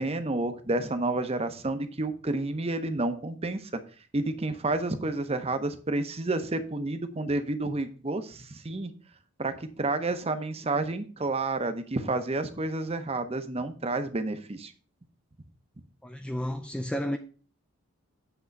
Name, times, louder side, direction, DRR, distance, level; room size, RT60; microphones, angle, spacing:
voice 1, 0.0-3.7 4.1-8.9 9.4-14.7, right 2 dB, 25° right, 0.7 m, -30 dB
voice 2, 16.0-17.2, equal, 5° left, 0.3 m, -32 dB
8.1 x 3.6 x 6.4 m
head